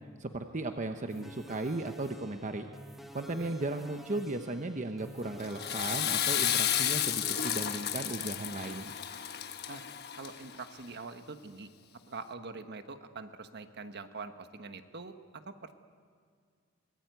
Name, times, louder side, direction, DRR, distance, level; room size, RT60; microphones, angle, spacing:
voice 1, 0.2-2.7 3.1-9.0, right 2 dB, 35° right, 6 dB, 0.9 m, -36 dB
sound 1, 1.1-7.7, equal, ahead, 1.3 m, -50 dB
Water / Toilet flush, 5.4-10.6, left 10 dB, 50° left, 1.2 m, -32 dB
voice 2, 10.1-11.7 12.1-15.7, right 4 dB, 50° right, 9 dB, 1.3 m, -44 dB
24.0 x 19.5 x 9.4 m, 2.1 s
head